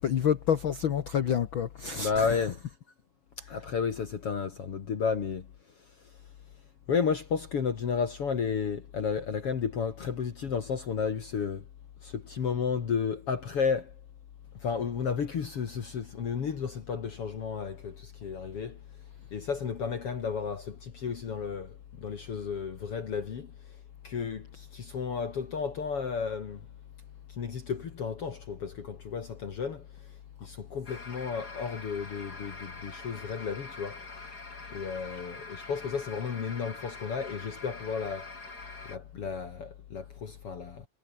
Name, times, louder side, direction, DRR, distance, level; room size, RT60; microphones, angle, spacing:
voice 1, 0.0-2.5, left 8 dB, 70° left, 1.1 m, -28 dB
voice 2, 1.9-2.6 3.5-5.5 6.9-11.6 12.0-13.9 14.6-18.8 19.3-23.5 24.0-26.6 27.4-29.8 30.4-34.0 34.7-38.3 38.9-40.9, left 6 dB, 45° left, 2.7 m, -32 dB
sound 1, 30.9-39.0, left 3 dB, 25° left, 5.1 m, -45 dB
omnidirectional pair, 3.8 m